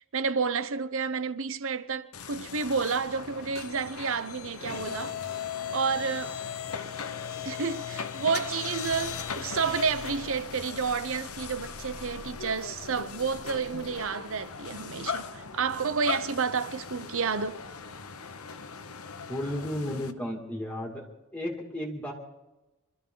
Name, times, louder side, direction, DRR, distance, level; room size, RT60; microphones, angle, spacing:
voice 1, 0.0-5.2 5.7-6.3 7.4-17.6, right 5 dB, 65° right, 0.9 m, -30 dB
sound 1, 2.1-20.1, left 6 dB, 80° left, 1.2 m, -38 dB
voice 2, 19.3-21.1 21.3-22.1, left 1 dB, 5° left, 2.6 m, -33 dB
25.5 x 14.0 x 3.9 m
head